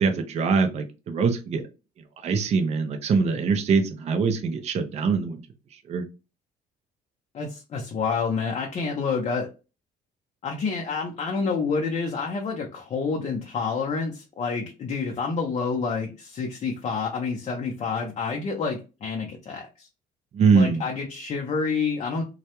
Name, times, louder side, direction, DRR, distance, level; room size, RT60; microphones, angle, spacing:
voice 1, 0.0-1.6 2.2-5.4 5.9-6.0 20.3-20.8, right 5 dB, 40° right, 6 dB, 0.4 m, -23 dB
voice 2, 7.3-9.5 10.4-19.9 20.5-22.2, left 5 dB, 40° left, 1 dB, 0.5 m, -28 dB
2.2 x 2.1 x 2.8 m, 0.30 s
cardioid pair, 110°, 17 cm